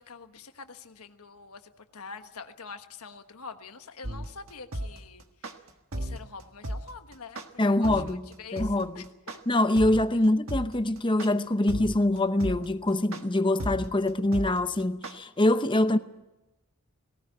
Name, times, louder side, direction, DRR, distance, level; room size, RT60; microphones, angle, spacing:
voice 1, 0.0-1.6 1.9-5.2 6.0-7.4 7.8-9.0, left 5 dB, 80° left, 1.3 m, -45 dB
sound 1, 4.0-15.1, right 1 dB, 65° right, 1.5 m, -34 dB
voice 2, 7.6-9.1 9.5-16.0, left 1 dB, 20° left, 0.8 m, -24 dB
18.5 x 18.0 x 9.0 m
head